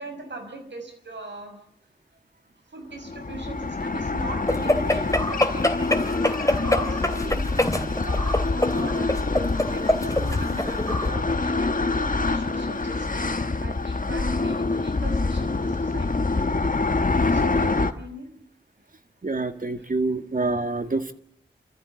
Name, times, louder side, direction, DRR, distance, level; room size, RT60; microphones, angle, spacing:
voice 1, 0.0-1.6 2.7-5.8 6.4-16.2 17.3-18.4 19.6-19.9 20.6-21.1, right 2 dB, 75° right, 5 dB, 5.8 m, -40 dB
sound 1, 3.0-17.9, left 3 dB, 45° left, 1.3 m, -26 dB
sound 2, 4.5-11.1, left 1 dB, 15° left, 2.9 m, -25 dB
voice 2, 19.2-21.1, right 3 dB, 45° right, 8 dB, 1.8 m, -26 dB
28.0 x 14.0 x 7.8 m, 0.70 s
wide cardioid pair, 55°, 19 cm